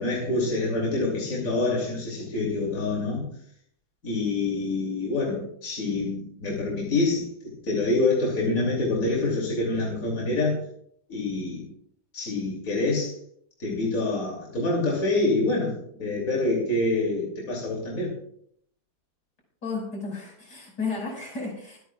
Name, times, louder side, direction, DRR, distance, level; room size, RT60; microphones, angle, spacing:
voice 1, 0.0-3.3 4.0-10.6 11.1-11.6 12.1-13.2 13.6-18.1, left 2 dB, 55° left, -3 dB, 3.3 m, -26 dB
voice 2, 19.6-21.8, left 4 dB, 85° left, -2 dB, 6.2 m, -33 dB
25.0 x 9.3 x 2.4 m, 0.66 s
omnidirectional pair, 1.8 m